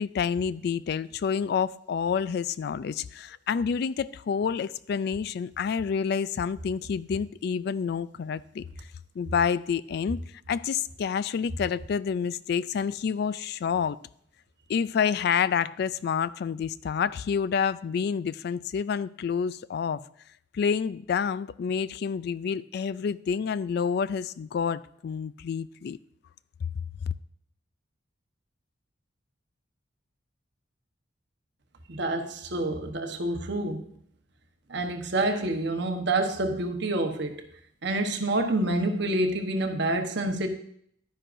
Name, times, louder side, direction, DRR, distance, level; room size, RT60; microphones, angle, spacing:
voice 1, 0.0-8.7 9.2-10.2 10.5-14.0 14.7-20.1 20.5-26.0 27.0-27.1, left 6 dB, 55° left, 0.3 m, -28 dB
voice 2, 31.9-33.8 34.7-37.5 37.8-40.5, right 2 dB, 60° right, 1.1 m, -27 dB
11.5 x 10.0 x 2.6 m
head